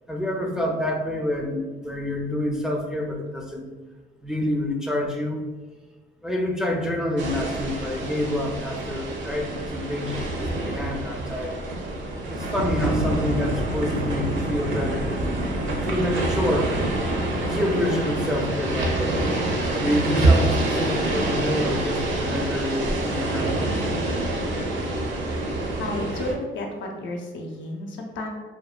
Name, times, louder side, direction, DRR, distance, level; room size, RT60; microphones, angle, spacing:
voice 1, 0.1-3.7 4.2-5.4 6.2-11.6 12.3-15.4 15.9-16.7 17.4-19.2 19.8-23.7, left 1 dB, 5° right, 0 dB, 0.3 m, -27 dB
sound 1, 7.2-26.3, right 1 dB, 70° right, 0.6 m, -26 dB
voice 2, 25.8-28.3, left 1 dB, 75° left, 0 dB, 0.6 m, -32 dB
2.8 x 2.1 x 2.3 m, 1.3 s
cardioid pair, 90°, 20 cm